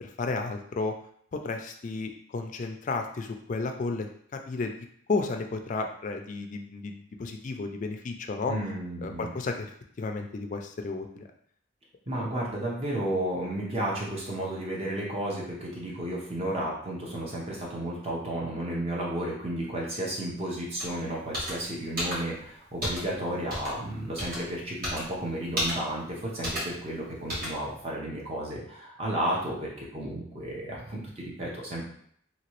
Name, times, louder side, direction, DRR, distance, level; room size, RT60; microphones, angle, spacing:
voice 1, 0.0-0.9 1.3-4.7 5.1-8.6 9.0-9.7 10.0-11.2, left 3 dB, 40° left, 5 dB, 0.3 m, -33 dB
voice 2, 8.5-9.4 12.1-31.9, right 1 dB, 30° right, -3 dB, 0.8 m, -33 dB
sound 1, 20.8-20.9 21.3-21.5 22.0-22.2 22.8-23.0 23.5-23.7 24.2-24.4 24.8-25.0 25.6-25.7 26.4-26.6 27.3-27.5, equal, 50° right, 1.3 m, -30 dB
2.9 x 2.8 x 3.0 m, 0.64 s
head